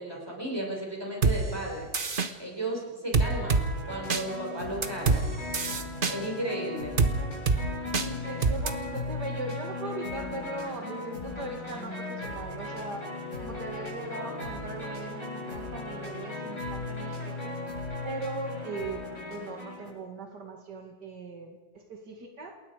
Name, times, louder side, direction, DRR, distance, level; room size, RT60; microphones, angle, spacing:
voice 1, 0.0-1.9 2.4-5.3 6.1-7.0, right 1 dB, 15° right, -1 dB, 5.9 m, -34 dB
sound 1, 1.2-1.4 1.9-2.3 3.1-3.6 4.1-4.2 4.8-5.2 5.5-6.1 7.0-7.1 7.5-7.6 7.9-8.1 8.4-8.7, right 4 dB, 35° right, 1.3 m, -24 dB
sound 2, 3.2-19.9, left 2 dB, 45° left, 7.7 m, -37 dB
voice 2, 7.9-13.1 13.4-17.6 18.0-22.6, right 2 dB, 80° right, 3 dB, 2.8 m, -39 dB
28.0 x 21.0 x 5.1 m, 1.2 s
omnidirectional pair, 1.8 m